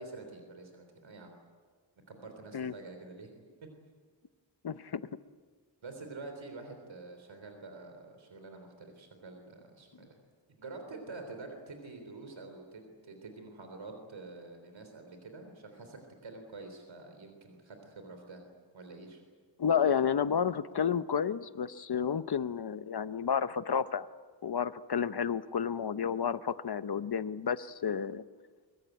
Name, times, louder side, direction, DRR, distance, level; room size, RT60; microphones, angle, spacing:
voice 1, 0.0-1.4 2.1-3.7 5.8-10.2 10.6-18.4 18.7-19.2, right 3 dB, 80° right, 5 dB, 3.7 m, -47 dB
voice 2, 4.6-5.0 19.6-24.1 24.4-28.2, left 7 dB, 55° left, 13 dB, 0.9 m, -31 dB
23.5 x 23.0 x 9.3 m, 1.5 s
wide cardioid pair, 110°, 45 cm